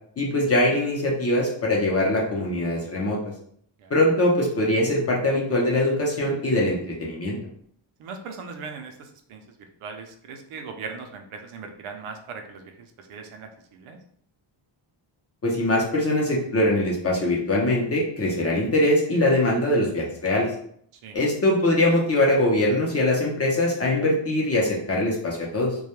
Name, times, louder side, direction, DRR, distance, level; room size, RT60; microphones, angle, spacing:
voice 1, 0.2-3.2 3.9-7.4 15.4-20.5 21.1-25.8, left 1 dB, 30° left, -3 dB, 0.6 m, -22 dB
voice 2, 8.0-9.4 9.8-14.0 21.0-21.2, right 5 dB, 80° right, 4 dB, 0.6 m, -39 dB
2.2 x 2.1 x 2.9 m, 0.64 s
wide cardioid pair, 150°, 49 cm